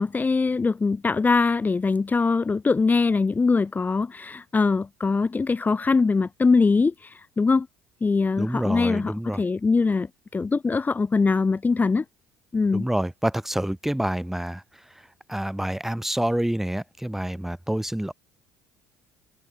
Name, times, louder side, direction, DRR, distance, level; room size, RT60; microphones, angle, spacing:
voice 1, 0.0-7.7 8.0-12.0 12.5-12.9, left 4 dB, 25° left, 5.2 m, -22 dB
voice 2, 8.4-9.4 12.7-14.6 15.3-18.1, right 1 dB, 5° right, 5.8 m, -27 dB
hypercardioid pair, 65°, 7 cm